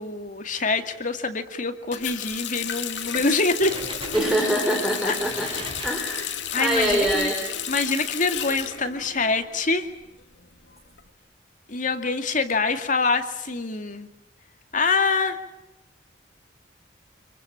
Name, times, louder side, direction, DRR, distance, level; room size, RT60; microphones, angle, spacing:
voice 1, 0.0-3.8 5.0-5.2 5.5-5.6 6.5-7.3 7.7-9.9 11.7-14.1 14.7-15.4, left 3 dB, 45° left, 7 dB, 2.3 m, -25 dB
Water tap faucet, 1.9-9.7 10.0-11.0, left 9 dB, 75° left, 2.3 m, -33 dB
sound 1, 2.9-3.4 3.6-4.6 5.1-7.8, right 2 dB, 30° right, 5.3 m, -39 dB
voice 2, 4.1-5.5 5.8-7.4, right 1 dB, 5° right, 1 dB, 4.5 m, -24 dB
27.0 x 23.5 x 8.8 m, 0.84 s
head